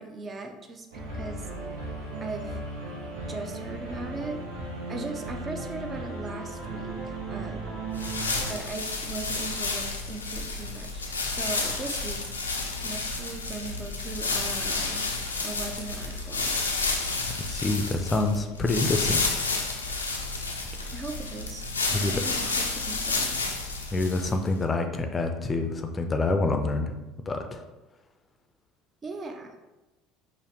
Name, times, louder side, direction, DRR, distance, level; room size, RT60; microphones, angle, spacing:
voice 1, 0.0-1.5 2.2-2.6 3.3-4.4 4.9-7.9 8.5-12.2 12.8-15.1 15.4-16.6 20.9-21.6 21.9-23.4 29.0-29.6, right 3 dB, 35° right, 4 dB, 0.5 m, -38 dB
sound 1, 0.9-8.5, right 2 dB, 70° right, 0.7 m, -36 dB
sound 2, 7.9-24.5, left 3 dB, 85° left, 0.4 m, -30 dB
voice 2, 17.4-19.3 21.9-22.1 23.9-27.0 27.3-27.6, left 2 dB, 25° left, 5 dB, 0.5 m, -27 dB
5.5 x 2.1 x 3.0 m, 1.1 s
figure-of-eight pair, 65°, 0 cm